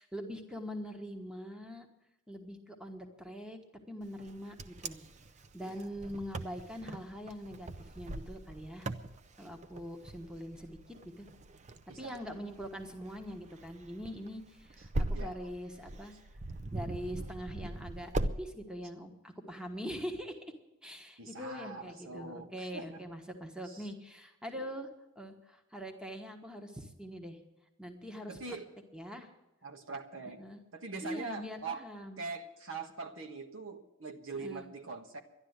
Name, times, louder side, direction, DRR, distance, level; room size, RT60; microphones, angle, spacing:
voice 1, 0.0-1.9 2.3-3.6 3.9-5.0 5.5-7.7 7.9-8.9 9.4-11.3 12.0-16.1 16.7-18.1 18.4-20.4 20.8-24.9 25.2-27.4 27.8-28.4 28.9-29.3 30.4-30.6 31.0-32.2 34.4-34.7, equal, 5° right, 4 dB, 1.3 m, -43 dB
Wind, 4.2-18.4, right 2 dB, 35° right, 0.5 m, -40 dB
voice 2, 11.9-12.2 15.1-15.4 21.2-23.0 23.6-23.9 24.5-24.7 28.3-28.7 29.6-30.4 30.7-31.9 32.2-35.2, right 4 dB, 75° right, 5 dB, 1.5 m, -43 dB
11.5 x 11.5 x 8.0 m, 0.95 s
head